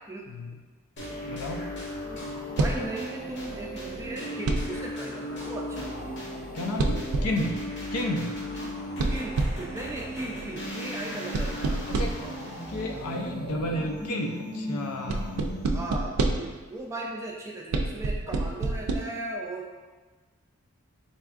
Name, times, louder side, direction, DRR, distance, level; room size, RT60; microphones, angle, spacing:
voice 1, 0.3-0.6 1.3-1.6 2.7-2.8 6.5-7.6 7.9-8.4 11.9-12.2 12.7-15.4 18.3-18.4, left 1 dB, 80° left, 3 dB, 0.5 m, -32 dB
sound 1, 1.0-16.1, equal, 50° left, 0.8 m, -36 dB
voice 2, 2.6-5.9 8.5-8.7 9.1-11.6 15.7-19.8, right 2 dB, 15° right, -1 dB, 0.3 m, -37 dB
sound 2, 2.6-2.9 4.5-4.9 6.8-7.5 9.0-9.8 11.3-12.3 15.1-16.6 17.7-19.0, right 2 dB, 90° right, 0.4 m, -27 dB
4.1 x 3.4 x 2.4 m, 1.3 s
head